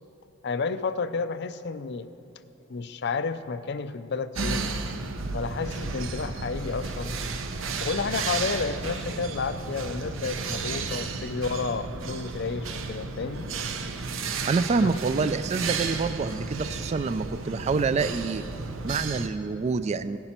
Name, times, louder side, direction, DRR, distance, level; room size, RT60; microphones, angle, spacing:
voice 1, 0.4-2.1 2.7-4.7 5.3-7.2 7.8-13.5 14.8-14.9, left 4 dB, 60° left, 13 dB, 0.5 m, -31 dB
sound 1, 4.4-19.3, right 4 dB, 75° right, 0.8 m, -33 dB
voice 2, 14.5-18.4 18.8-20.2, right 4 dB, 35° right, 13 dB, 0.3 m, -27 dB
17.0 x 10.5 x 4.4 m, 2.9 s
head